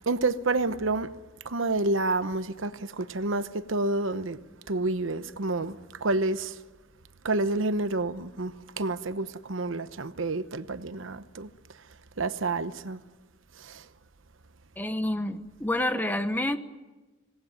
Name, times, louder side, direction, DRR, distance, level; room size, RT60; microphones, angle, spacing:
voice 1, 0.1-1.1 1.4-4.4 4.7-6.6 7.2-11.5 12.2-13.0 13.6-13.8, right 2 dB, 70° right, 1.0 m, -29 dB
voice 2, 14.8-16.6, left 1 dB, 10° left, 1.1 m, -28 dB
26.0 x 19.0 x 9.2 m
head